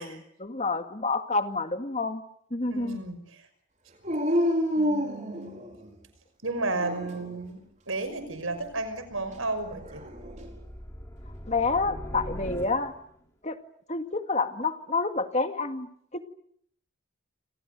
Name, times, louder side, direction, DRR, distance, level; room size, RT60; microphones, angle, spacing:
voice 1, 0.0-2.2 2.5-3.0 11.5-12.9 13.4-13.6 13.9-16.2, left 3 dB, 35° left, 7 dB, 2.1 m, -29 dB
voice 2, 2.7-3.5 4.6-5.6 6.4-10.0, right 2 dB, 80° right, 11 dB, 5.9 m, -33 dB
Dog, 4.0-5.9 6.6-7.4 9.6-10.5, equal, 35° right, 4.6 m, -29 dB
sound 1, 8.0-13.2, equal, 15° left, 4.7 m, -42 dB
29.0 x 27.5 x 6.7 m, 0.67 s
head